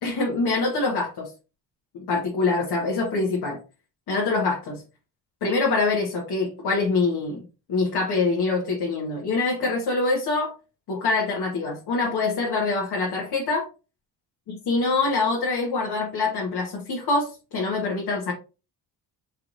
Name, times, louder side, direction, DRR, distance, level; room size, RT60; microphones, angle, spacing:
voice 1, 0.0-1.3 1.9-3.6 4.1-4.8 5.4-7.4 7.7-10.5 10.9-13.7 14.5-18.3, left 3 dB, 70° left, -2 dB, 1.3 m, -25 dB
4.8 x 3.1 x 2.5 m, 0.31 s
cardioid pair, 105°, 40 cm